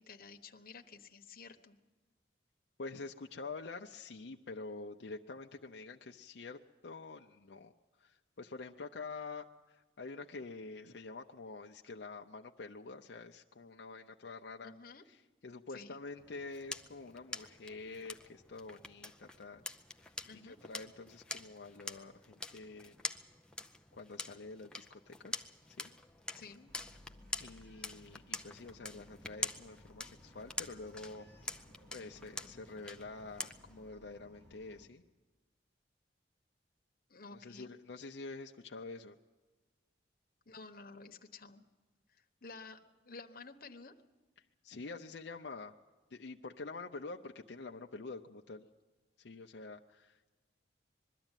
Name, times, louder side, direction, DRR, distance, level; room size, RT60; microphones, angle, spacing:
voice 1, 0.0-1.8 14.6-15.0 15.7-16.0 20.2-20.6 26.3-26.7 37.1-37.7 40.5-41.6 42.2-42.8 43.0-43.9, left 4 dB, 50° left, 4 dB, 1.1 m, -52 dB
voice 2, 2.8-7.7 8.0-14.7 15.1-19.6 20.0-20.1 20.4-22.9 23.9-25.4 25.7-25.9 27.4-31.3 31.9-35.0 37.3-39.2 44.6-45.7 46.1-48.6 49.2-50.3, left 3 dB, 75° left, 3 dB, 0.6 m, -47 dB
sound 1, 16.2-33.9, left 2 dB, 5° left, 0.5 m, -46 dB
Bark, 26.7-34.9, left 1 dB, 70° right, 3.2 m, -60 dB
22.0 x 13.0 x 9.1 m, 1.2 s
head